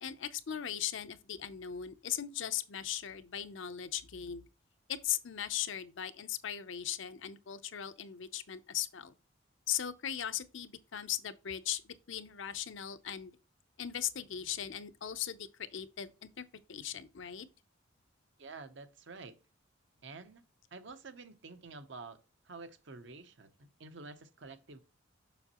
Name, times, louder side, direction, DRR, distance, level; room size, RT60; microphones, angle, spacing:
voice 1, 0.0-4.4 4.9-9.1 9.7-13.3 13.8-17.5, left 10 dB, 65° left, 0.6 m, -38 dB
voice 2, 18.4-19.4 20.0-20.4 20.7-24.8, right 3 dB, 60° right, 0.8 m, -49 dB
7.0 x 6.2 x 2.9 m
head